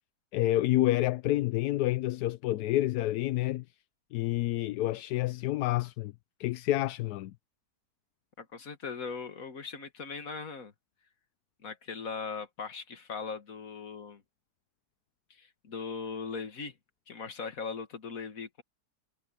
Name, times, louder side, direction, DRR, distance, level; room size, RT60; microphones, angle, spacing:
voice 1, 0.3-3.6 4.1-6.1 6.4-7.3, left 15 dB, 80° left, 1.1 m, -28 dB
voice 2, 8.4-10.7 11.6-14.2 15.3-16.7 17.1-18.6, left 5 dB, 60° left, 2.1 m, -39 dB
omnidirectional pair, 1.7 m